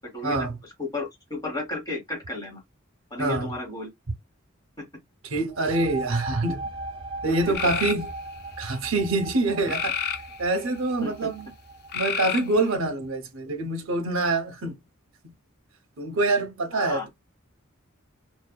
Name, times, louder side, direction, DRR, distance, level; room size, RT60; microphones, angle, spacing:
voice 1, 0.6-2.6 3.1-3.9 4.8-4.9 7.5-7.6 11.0-11.3 16.7-17.1, left 2 dB, 20° left, 1.1 m, -33 dB
voice 2, 3.2-3.5 5.3-6.7 7.2-8.1 8.6-10.0 10.4-11.5 11.9-14.8 15.2-15.3 16.0-17.1, right 2 dB, 75° right, 0.7 m, -25 dB
sound 1, 5.5-12.9, right 2 dB, 25° right, 0.7 m, -39 dB
sound 2, 7.5-8.0 9.7-10.7 11.9-12.7, left 7 dB, 50° left, 0.4 m, -29 dB
2.7 x 2.1 x 2.2 m
head